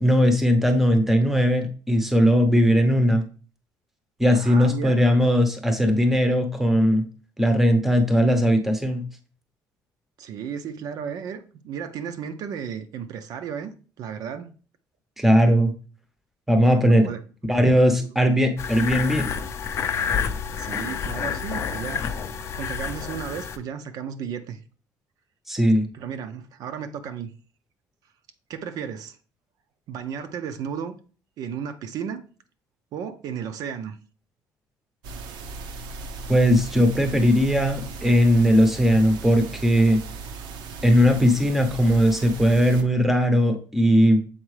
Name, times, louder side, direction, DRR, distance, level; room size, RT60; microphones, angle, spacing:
voice 1, 0.0-3.2 4.2-7.0 7.4-9.1 15.2-15.7 16.5-17.1 17.5-19.3 25.5-25.9 36.3-40.0 40.8-44.2, equal, 5° right, 0.7 m, -19 dB
voice 2, 4.3-5.0 10.2-14.5 16.9-17.2 18.0-18.1 20.6-22.1 22.5-24.6 25.9-27.3 28.5-29.2 29.9-31.0 31.4-32.2 32.9-34.0, right 7 dB, 60° right, 0.5 m, -34 dB
sound 1, 18.6-23.6, left 7 dB, 40° left, 0.5 m, -29 dB
sound 2, 35.0-42.8, right 4 dB, 90° right, 0.8 m, -37 dB
7.2 x 4.4 x 3.2 m
cardioid pair, 165°, 7 cm